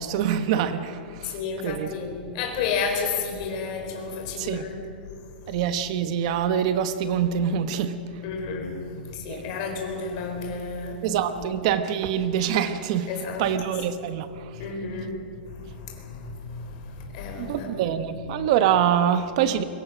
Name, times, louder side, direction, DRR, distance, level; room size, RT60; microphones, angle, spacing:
voice 1, 0.0-1.4 1.6-1.9 4.4-4.7 5.5-8.0 9.0-9.4 11.0-13.1 13.4-14.3 17.4-19.6, right 9 dB, 40° right, 10 dB, 1.1 m, -25 dB
voice 2, 1.3-4.8 8.2-11.1 11.4-11.5 13.1-13.7 14.6-17.7, left 5 dB, 35° left, 2 dB, 4.3 m, -32 dB
25.0 x 22.5 x 6.2 m, 2.4 s
supercardioid pair, 175°, 5 cm